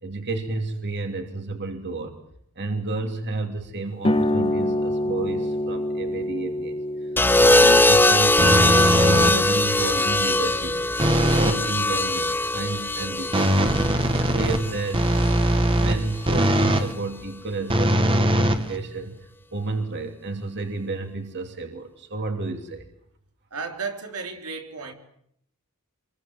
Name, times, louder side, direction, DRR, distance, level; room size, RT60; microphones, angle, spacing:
voice 1, 0.0-2.2 2.6-7.1 7.4-10.9 11.3-13.7 14.1-15.1 15.7-22.9, right 3 dB, 50° right, 2.9 m, -31 dB
sound 1, 4.0-11.2, left 1 dB, 25° left, 1.4 m, -28 dB
sound 2, 7.2-15.3 16.5-16.9, left 2 dB, 10° left, 1.1 m, -21 dB
sound 3, 8.4-9.6 11.0-11.7 13.3-16.9 17.7-19.2, right 1 dB, 25° right, 1.9 m, -21 dB
voice 2, 23.5-24.9, right 4 dB, 85° right, 4.2 m, -33 dB
26.5 x 23.0 x 7.6 m
head